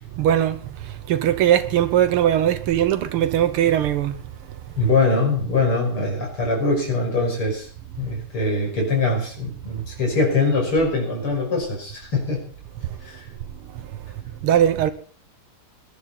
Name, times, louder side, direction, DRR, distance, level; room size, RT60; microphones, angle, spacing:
voice 1, 0.2-0.6 1.1-4.1 14.4-14.9, right 10 dB, 85° right, 1.9 m, -19 dB
voice 2, 4.8-7.7 8.0-12.4 13.0-13.3, left 3 dB, 75° left, 6.6 m, -22 dB
21.5 x 10.5 x 4.2 m
omnidirectional pair, 2.4 m